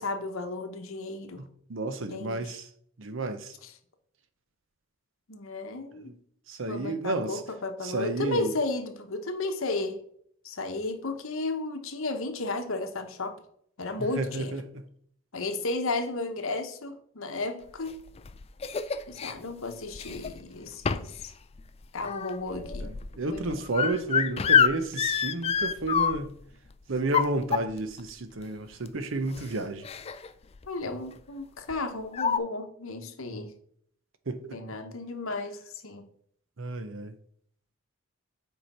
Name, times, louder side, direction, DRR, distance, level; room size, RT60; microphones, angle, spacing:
voice 1, 0.0-1.4 2.1-2.6 3.6-3.7 5.3-6.1 6.7-10.0 10.4-13.4 13.8-14.5 15.3-17.9 19.1-21.3 21.9-22.9 23.3-23.5 30.7-33.5 34.5-36.1, left 2 dB, 70° left, 1.1 m, -33 dB
voice 2, 1.4-2.6 3.0-3.5 6.5-7.4 7.8-8.5 14.2-14.8 22.8-26.3 26.9-29.9 34.3-34.6 36.6-37.1, right 2 dB, 65° right, 0.7 m, -31 dB
sound 1, 17.9-19.3 19.9-20.4 20.8-21.2 21.5-26.4 27.0-28.0 28.9-29.0 29.3-29.5 29.8-30.3 30.5-30.8 31.7-31.8 32.1-32.4, left 7 dB, 30° left, 0.3 m, -27 dB
7.6 x 4.9 x 4.3 m
head